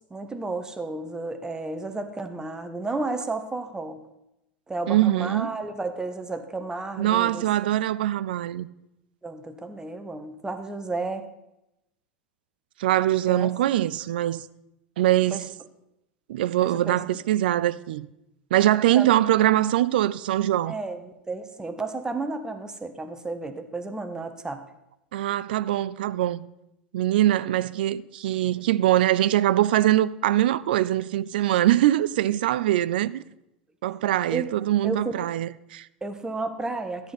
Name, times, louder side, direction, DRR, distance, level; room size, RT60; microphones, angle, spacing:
voice 1, 0.1-4.0 4.7-7.5 9.2-11.3 13.3-13.5 15.3-15.4 16.6-17.0 18.9-19.1 20.7-24.6 34.3-34.5 34.8-35.2 36.0-37.1, right 3 dB, 10° right, 1.2 m, -32 dB
voice 2, 4.9-5.6 7.0-8.7 12.8-14.4 15.0-15.5 16.3-18.1 18.5-20.8 25.1-26.5 26.9-33.2 33.8-35.9, right 13 dB, 60° right, 0.4 m, -23 dB
13.5 x 9.7 x 4.1 m
figure-of-eight pair, 85°, 6 cm